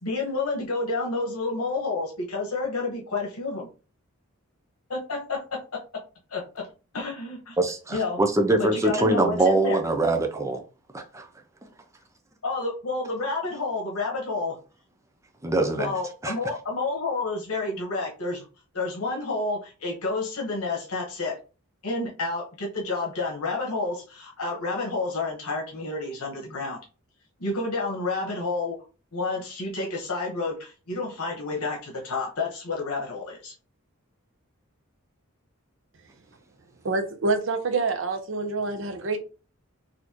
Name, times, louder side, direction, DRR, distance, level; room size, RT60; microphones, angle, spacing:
voice 1, 0.0-3.7 4.9-5.6 6.3-6.7 6.9-7.6 7.9-8.2 8.6-9.8 12.4-14.6 15.8-18.4 18.7-21.4 21.8-26.8 27.4-28.8 29.1-33.5, left 3 dB, 85° left, 1.3 m, -29 dB
voice 2, 7.6-10.6 10.9-11.3 15.4-15.9 16.2-16.3, right 2 dB, 15° right, 0.4 m, -23 dB
voice 3, 36.8-39.2, right 3 dB, 60° right, 0.7 m, -26 dB
4.2 x 2.7 x 3.0 m
head